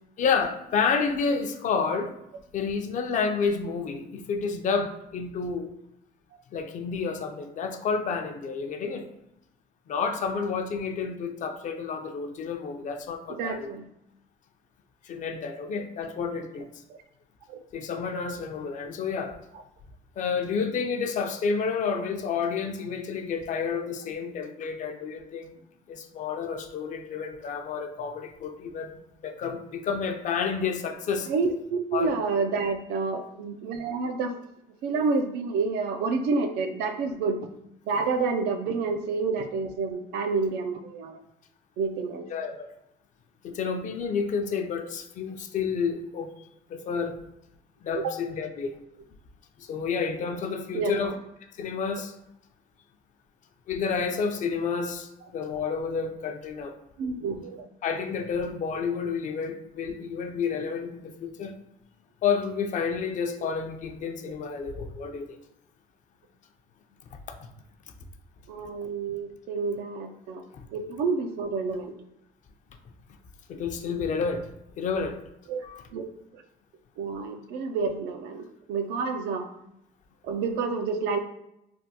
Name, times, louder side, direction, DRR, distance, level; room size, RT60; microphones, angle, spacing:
voice 1, 0.2-2.1 2.5-5.7 6.5-9.1 9.9-13.7 15.0-16.7 17.7-19.4 20.2-25.5 25.9-28.9 29.2-31.3 31.9-32.1 42.3-42.7 43.4-47.2 47.8-48.7 49.6-51.1 51.6-52.1 53.7-56.7 57.8-61.5 62.2-65.4 67.1-67.5 70.5-70.6 73.5-74.4 74.8-75.2 75.6-75.8, left 5 dB, 50° left, 6 dB, 0.4 m, -30 dB
voice 2, 13.3-13.9 16.9-17.0 17.5-17.6 31.3-34.4 34.8-37.4 37.9-41.2 41.8-42.3 48.0-48.1 50.7-51.1 57.0-57.7 68.5-70.4 70.7-72.0 75.5-76.1 76.3-76.4 77.0-79.5 80.2-81.2, right 4 dB, 80° right, 7 dB, 0.4 m, -29 dB
3.4 x 2.2 x 2.8 m, 0.83 s
cardioid pair, 110°, 17 cm